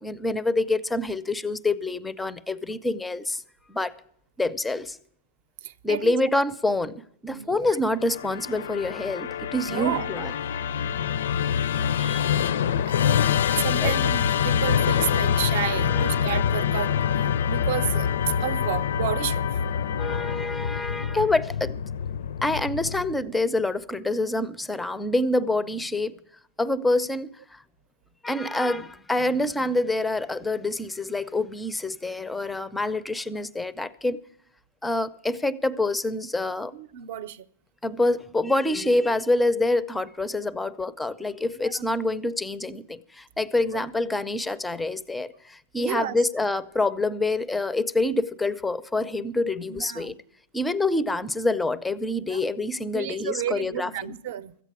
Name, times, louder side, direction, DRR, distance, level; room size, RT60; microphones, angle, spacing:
voice 1, 0.0-3.4 3.7-3.9 4.4-5.0 5.8-10.3 12.0-12.4 13.8-13.9 15.9-16.1 20.0-21.8 22.4-26.1 26.6-27.6 28.2-34.2 34.8-36.7 37.8-50.2 50.5-54.2, left 2 dB, 5° left, 0.4 m, -26 dB
voice 2, 5.6-6.4 7.3-7.8 9.6-10.1 12.2-12.9 13.5-19.6 36.7-37.5 41.5-41.9 43.7-43.8 45.8-46.2 49.7-50.1 52.3-52.5 52.9-54.6, right 10 dB, 55° right, 0.6 m, -32 dB
Musical instrument, 8.0-23.3, left 8 dB, 75° left, 0.5 m, -25 dB
14.5 x 8.2 x 8.3 m
supercardioid pair, 165°, 0 cm